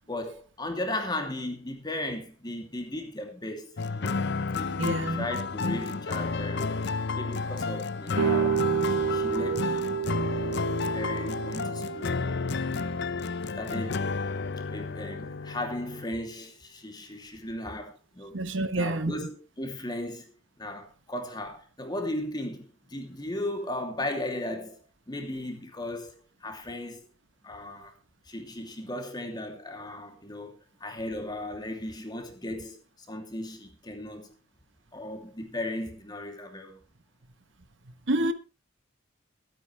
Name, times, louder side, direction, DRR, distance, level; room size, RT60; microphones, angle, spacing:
voice 1, 0.1-4.3 4.5-6.8 7.1-12.9 13.6-14.1 14.7-18.4 18.7-20.3 20.6-24.8 25.1-26.1 26.4-27.1 27.4-27.9 28.3-30.5 30.8-32.8 33.1-34.3 34.9-36.8, left 1 dB, 20° left, 2.8 m, -36 dB
sound 1, 3.8-16.1, left 4 dB, 55° left, 0.7 m, -31 dB
voice 2, 4.8-5.3 18.3-19.1 38.1-38.3, right 1 dB, 65° right, 1.1 m, -27 dB
sound 2, 8.2-13.9, right 7 dB, 80° right, 2.6 m, -30 dB
23.5 x 9.3 x 3.3 m
head